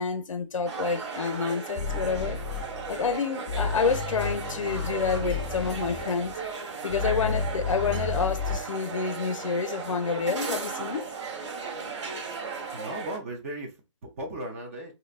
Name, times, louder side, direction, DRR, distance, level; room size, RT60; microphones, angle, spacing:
voice 1, 0.0-2.4 2.9-6.4 6.8-11.1, left 5 dB, 80° left, 0.4 m, -28 dB
sound 1, 0.7-13.2, right 5 dB, 65° right, 1.4 m, -36 dB
sound 2, 1.8-3.2 3.5-6.3 6.9-8.6, left 5 dB, 15° left, 0.7 m, -32 dB
voice 2, 12.7-14.9, right 1 dB, 25° right, 0.5 m, -37 dB
2.8 x 2.6 x 2.4 m
figure-of-eight pair, 150°, 16 cm